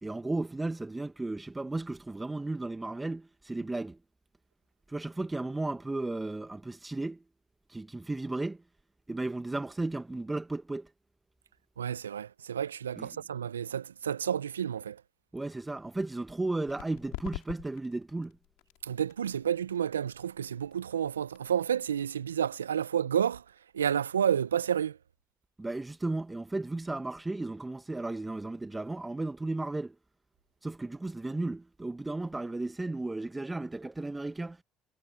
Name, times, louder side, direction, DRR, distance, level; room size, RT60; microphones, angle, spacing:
voice 1, 0.0-4.0 4.9-7.2 7.7-8.6 9.1-10.9 13.0-13.1 15.3-18.4 25.6-30.0 30.6-34.6, right 2 dB, 15° right, 1.4 m, -34 dB
voice 2, 11.8-15.0 18.8-23.4 23.7-25.0, right 8 dB, 85° right, 0.7 m, -30 dB
sound 1, 16.7-24.0, left 29 dB, 70° left, 5.1 m, -48 dB
hypercardioid pair, 55°, 0 cm